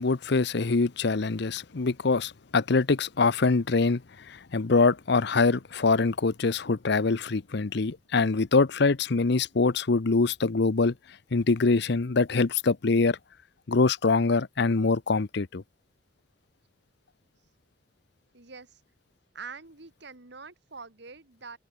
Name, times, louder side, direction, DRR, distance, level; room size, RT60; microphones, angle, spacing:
voice 1, 0.0-10.9 11.3-13.2 13.7-15.6, left 3 dB, 65° left, 0.8 m, -24 dB
voice 2, 18.3-18.8 19.3-21.6, right 5 dB, 65° right, 2.1 m, -44 dB
head